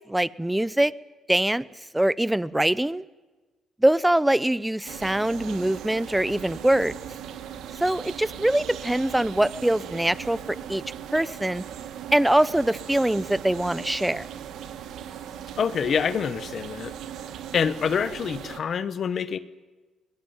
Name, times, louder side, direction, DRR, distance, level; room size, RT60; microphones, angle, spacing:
voice 1, 0.1-0.9 1.3-1.6 1.9-3.0 3.8-7.0 7.8-10.8 11.1-11.6 12.1-14.3, right 1 dB, 5° right, 19 dB, 0.8 m, -23 dB
sound 1, 4.9-18.6, right 9 dB, 80° right, 1.7 m, -39 dB
voice 2, 15.6-16.9 17.5-19.4, left 7 dB, 55° left, 14 dB, 1.1 m, -26 dB
22.0 x 20.5 x 9.0 m, 1.2 s
cardioid pair, 90°, 0 cm